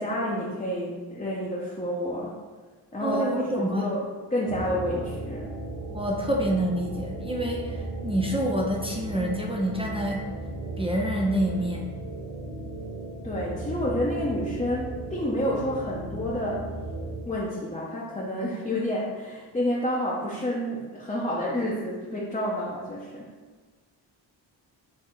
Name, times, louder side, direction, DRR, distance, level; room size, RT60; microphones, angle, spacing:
voice 1, 0.0-2.3 2.9-3.3 3.6-5.5 13.2-16.7 17.3-23.3, left 1 dB, 15° left, -6 dB, 0.8 m, -29 dB
voice 2, 3.0-3.9 5.9-10.3 10.8-11.9, right 1 dB, 10° right, -2 dB, 0.5 m, -27 dB
sound 1, 4.5-17.2, right 2 dB, 45° right, 0.8 m, -36 dB
4.4 x 2.8 x 3.7 m, 1.4 s
cardioid pair, 65°, 47 cm